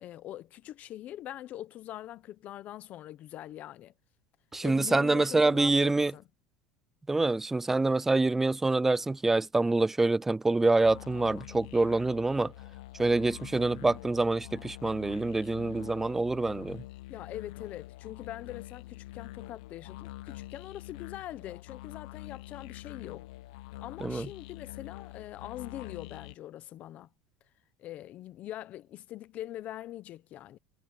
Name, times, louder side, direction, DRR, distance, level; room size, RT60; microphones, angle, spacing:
voice 1, 0.0-3.9 4.6-6.2 17.1-23.3 23.8-27.1 27.8-30.6, left 13 dB, 40° left, 1.0 m, -43 dB
voice 2, 4.5-6.1 7.1-12.5 13.0-16.8 24.0-24.3, right 2 dB, 10° right, 0.4 m, -26 dB
sound 1, 10.8-26.4, left 16 dB, 80° left, 0.9 m, -45 dB
cardioid pair, 150°, 4 cm